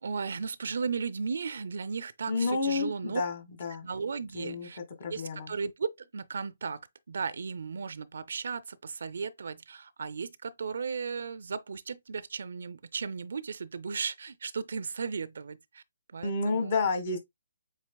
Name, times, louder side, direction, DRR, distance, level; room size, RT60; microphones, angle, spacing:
voice 1, 0.0-3.2 3.8-4.8 5.1-15.8 16.1-16.7, right 5 dB, 65° right, 0.4 m, -35 dB
voice 2, 2.3-3.9 4.3-4.7 5.0-5.5 16.2-17.2, left 4 dB, 45° left, 1.5 m, -30 dB
7.4 x 2.9 x 2.2 m
figure-of-eight pair, 140°, 0 cm